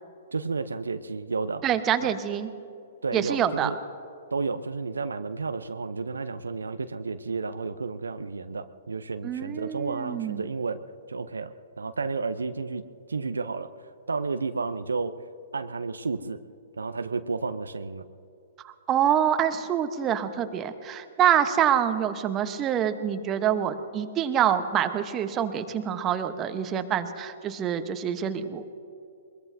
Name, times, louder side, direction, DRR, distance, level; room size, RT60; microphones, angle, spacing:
voice 1, 0.3-1.6 2.0-2.1 3.0-3.8 4.3-10.8 11.1-12.8 13.1-15.2 15.5-16.4 16.8-18.1, right 4 dB, 80° right, 10 dB, 0.6 m, -32 dB
voice 2, 1.6-2.5 3.1-3.7 9.2-10.4 18.6-28.6, right 9 dB, 25° right, 8 dB, 1.0 m, -26 dB
22.0 x 22.0 x 2.7 m, 2.6 s
figure-of-eight pair, 115°, 0 cm